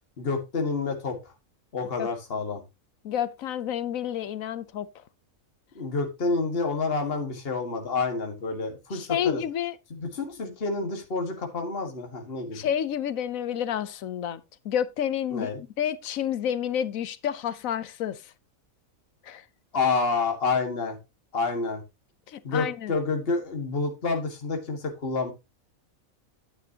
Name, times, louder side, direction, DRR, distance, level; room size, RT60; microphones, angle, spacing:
voice 1, 0.2-1.2 1.7-2.6 5.8-9.4 9.9-12.7 15.3-15.6 19.7-21.0 21.3-21.8 22.4-25.3, left 4 dB, 45° left, 1.9 m, -28 dB
voice 2, 3.0-4.9 8.9-9.7 12.5-15.5 15.8-18.3 19.2-19.4 22.3-22.9, left 9 dB, 75° left, 1.1 m, -29 dB
9.7 x 9.3 x 2.8 m
omnidirectional pair, 1.4 m